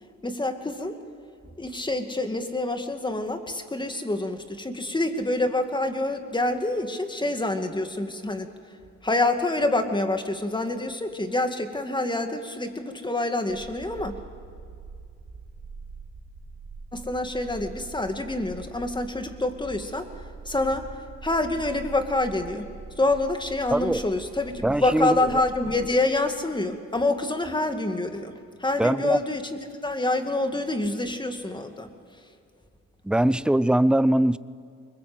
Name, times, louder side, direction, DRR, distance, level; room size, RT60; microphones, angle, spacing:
voice 1, 0.2-1.0 1.6-8.5 9.0-14.2 16.9-20.1 20.5-20.9 21.2-22.7 23.0-28.3 28.6-31.9, left 2 dB, 15° left, 2.3 m, -27 dB
sound 1, 13.5-26.0, right 4 dB, 55° right, 3.9 m, -43 dB
voice 2, 23.7-24.0 24.6-25.2 28.8-29.2 33.0-34.4, right 1 dB, 5° right, 0.6 m, -21 dB
24.5 x 21.5 x 7.9 m
cardioid pair, 90°, 30 cm